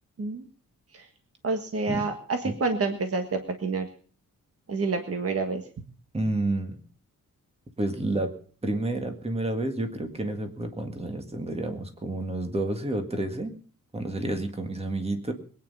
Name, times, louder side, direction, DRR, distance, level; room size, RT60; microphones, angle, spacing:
voice 1, 1.4-3.9 4.7-5.6, right 3 dB, 45° right, 6 dB, 1.5 m, -28 dB
voice 2, 6.1-6.8 7.8-8.3 8.6-13.5 13.9-15.3, right 2 dB, 20° right, 6 dB, 1.9 m, -30 dB
21.5 x 9.6 x 5.5 m, 0.43 s
wide cardioid pair, 180°, 33 cm